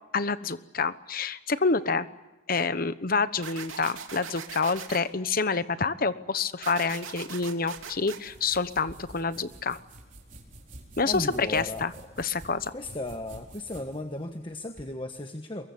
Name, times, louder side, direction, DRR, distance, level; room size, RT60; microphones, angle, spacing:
voice 1, 0.1-2.1 2.5-9.8 11.0-11.9 12.2-12.7, left 4 dB, 45° left, 13 dB, 1.1 m, -28 dB
sound 1, 3.4-5.0 6.6-8.2, right 7 dB, 80° right, 2.9 m, -40 dB
sound 2, 7.7-14.9, right 1 dB, 40° right, 4.6 m, -49 dB
voice 2, 11.0-11.9 12.7-15.7, left 1 dB, 25° left, 5 dB, 1.3 m, -35 dB
23.5 x 22.0 x 9.6 m, 1.1 s
head